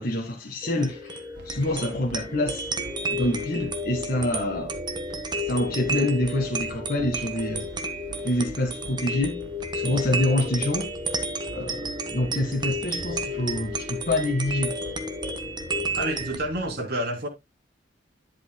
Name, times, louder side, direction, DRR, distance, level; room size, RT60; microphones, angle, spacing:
voice 1, 0.0-2.7 3.1-4.7 5.4-7.7 8.2-9.4 9.7-11.0 11.5-14.7, left 1 dB, 50° left, 1.6 m, -27 dB
sound 1, 0.6-16.4, right 1 dB, 25° right, 1.3 m, -31 dB
sound 2, 1.3-16.7, right 2 dB, 75° right, 2.0 m, -45 dB
voice 2, 15.9-17.3, right 1 dB, 55° right, 3.2 m, -28 dB
11.0 x 8.1 x 2.2 m
head